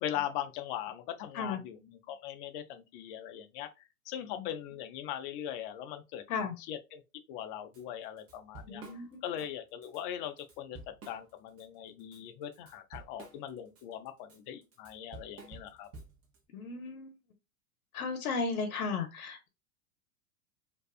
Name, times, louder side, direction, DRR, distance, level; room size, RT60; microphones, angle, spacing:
voice 1, 0.0-3.7 4.1-7.0 7.3-8.8 9.2-10.8 11.1-15.9, left 10 dB, 40° left, 0.4 m, -40 dB
Drum kit / Drum, 7.7-7.8 8.2-9.5 9.8-10.0 10.4-11.6 12.0-16.4, right 3 dB, 35° right, 0.9 m, -51 dB
voice 2, 8.7-9.2 16.5-17.1 17.9-19.5, left 4 dB, 75° left, 0.7 m, -35 dB
2.6 x 2.3 x 2.3 m
hypercardioid pair, 105°, 43 cm